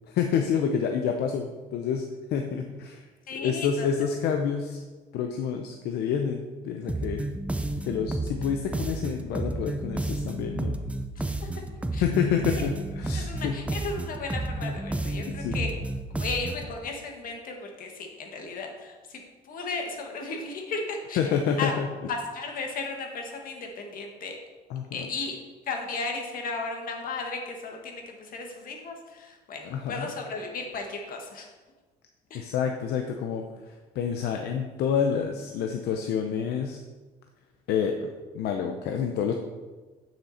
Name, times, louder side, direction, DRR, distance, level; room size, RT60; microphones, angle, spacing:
voice 1, 0.1-2.0 2.3-3.1 3.4-4.8 5.1-7.2 7.8-10.8 12.0-13.6 15.3-15.7 21.2-21.9 24.7-25.1 29.6-30.1 32.3-36.8 37.7-39.3, left 7 dB, 75° left, 4 dB, 0.7 m, -28 dB
voice 2, 3.3-3.9 11.2-11.3 11.5-11.6 11.9-12.0 12.6-12.7 13.1-15.7 16.2-21.7 22.1-24.4 24.9-25.3 25.7-31.5 32.3-32.5, left 3 dB, 55° left, 2 dB, 1.9 m, -35 dB
sound 1, 6.9-16.7, right 2 dB, 5° right, 0.7 m, -31 dB
9.8 x 6.2 x 4.3 m, 1.3 s
cardioid pair, 110°, 17 cm